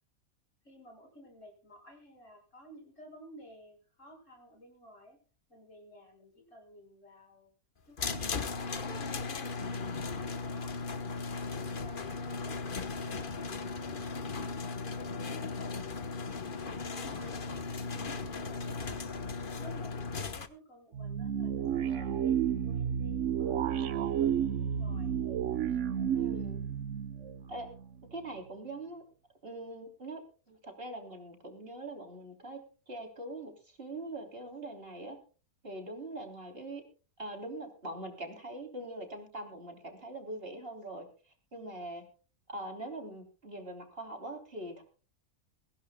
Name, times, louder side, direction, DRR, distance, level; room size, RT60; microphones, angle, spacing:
voice 1, 0.6-5.2 5.5-7.5 7.9-12.6 12.9-15.8 16.6-19.3 19.6-25.1, equal, 60° left, 3 dB, 5.6 m, -55 dB
sound 1, 8.0-20.5, left 4 dB, 40° left, 1.2 m, -37 dB
voice 2, 16.9-17.4 26.1-26.6 27.5-27.7 28.1-29.0 29.4-30.2 30.5-32.6 32.9-35.2 35.6-36.8 37.2-41.1 41.5-42.0 42.5-44.8, right 1 dB, 40° right, 3 dB, 3.5 m, -42 dB
sound 2, 20.9-28.1, right 9 dB, 60° right, 1.2 m, -31 dB
23.0 x 16.5 x 2.2 m, 0.36 s
omnidirectional pair, 1.5 m